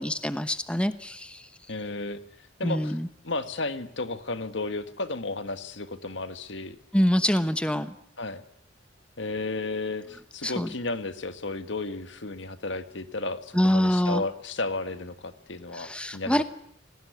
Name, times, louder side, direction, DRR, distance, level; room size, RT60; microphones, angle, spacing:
voice 1, 0.0-1.4 2.6-3.1 6.9-7.9 10.4-10.7 13.5-14.2 15.7-16.4, equal, 5° left, 11 dB, 1.0 m, -25 dB
voice 2, 1.7-2.2 2.6-3.0 3.2-6.8 8.2-8.4 9.2-16.4, left 3 dB, 65° left, 10 dB, 1.8 m, -33 dB
27.0 x 18.5 x 9.6 m, 0.69 s
head